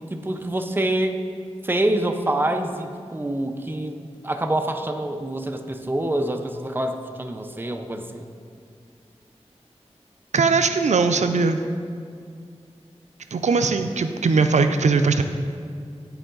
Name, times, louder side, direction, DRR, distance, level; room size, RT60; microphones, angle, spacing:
voice 1, 0.1-1.2 1.6-8.3, right 1 dB, 20° right, 6 dB, 0.5 m, -26 dB
voice 2, 10.3-11.6 13.3-15.2, right 4 dB, 85° right, 8 dB, 0.4 m, -20 dB
9.0 x 4.7 x 3.8 m, 2.2 s
wide cardioid pair, 55°, 12 cm